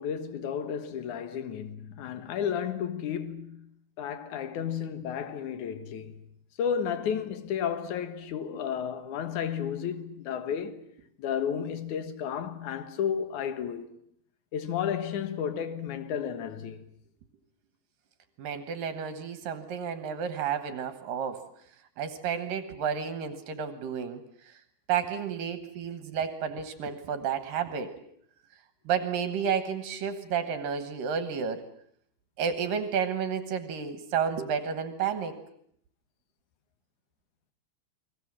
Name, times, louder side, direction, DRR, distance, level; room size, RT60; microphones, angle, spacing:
voice 1, 0.0-3.7 4.0-6.3 6.6-10.8 11.2-13.9 14.5-16.9, left 8 dB, 60° left, 2.6 m, -32 dB
voice 2, 18.4-21.4 22.0-24.2 24.9-27.9 28.9-31.6 32.4-35.4, right 7 dB, 70° right, 2.8 m, -31 dB
30.0 x 21.5 x 7.5 m
omnidirectional pair, 4.4 m